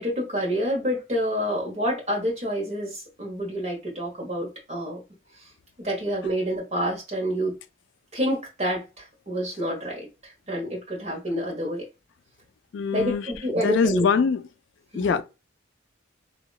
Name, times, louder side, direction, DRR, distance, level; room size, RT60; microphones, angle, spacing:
voice 1, 0.0-5.0 5.8-7.6 8.1-11.9 12.9-14.0 14.9-15.2, equal, 35° right, 1.4 m, -28 dB
voice 2, 12.7-13.3 13.6-14.4 14.9-15.2, left 5 dB, 65° left, 0.3 m, -23 dB
3.0 x 2.8 x 2.3 m
head